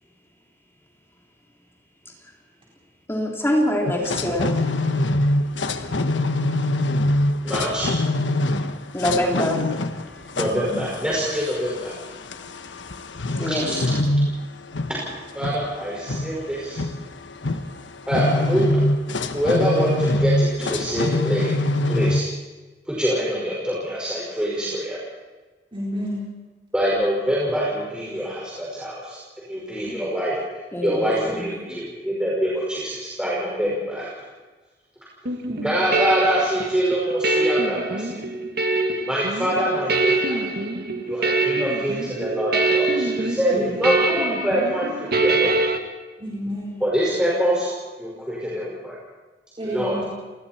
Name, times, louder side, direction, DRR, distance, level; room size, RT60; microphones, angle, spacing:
voice 1, 3.1-4.7 8.9-9.7 13.4-13.7 30.7-31.5, left 1 dB, 15° left, -1 dB, 3.6 m, -25 dB
sound 1, 3.9-22.2, left 1 dB, 90° left, 1.3 m, -24 dB
voice 2, 7.4-7.9 10.4-12.0 13.4-13.8 14.9-15.0 15.3-16.8 18.1-18.8 19.3-21.6 21.9-22.3 22.9-25.0 26.7-30.4 30.8-34.1 35.6-38.2 39.1-40.5 41.0-45.6 46.8-47.7 48.0-49.0 49.6-50.0, equal, 5° right, -6 dB, 5.4 m, -25 dB
voice 3, 25.7-26.2 29.9-30.0 35.5-35.7 43.5-43.9 46.2-46.8 49.6-50.1, equal, 30° right, -5 dB, 4.4 m, -30 dB
sound 2, 35.3-45.8, right 3 dB, 60° right, 2.0 m, -24 dB
29.5 x 19.5 x 4.5 m, 1.3 s
head